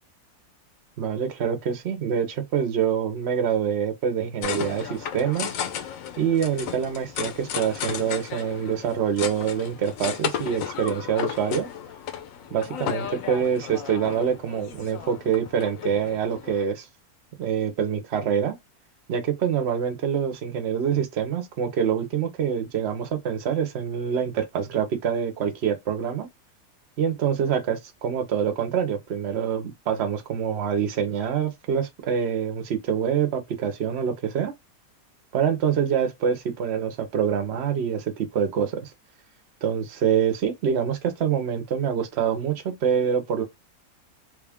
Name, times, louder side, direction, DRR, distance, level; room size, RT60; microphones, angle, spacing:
voice 1, 1.0-5.6 6.2-11.7 12.5-16.9 17.4-18.6 19.1-26.3 27.0-34.5 35.3-38.9 39.6-43.4, right 8 dB, 55° right, 1.0 m, -25 dB
sound 1, 4.4-16.6, left 8 dB, 70° left, 1.0 m, -34 dB
3.4 x 2.4 x 3.5 m
omnidirectional pair, 1.5 m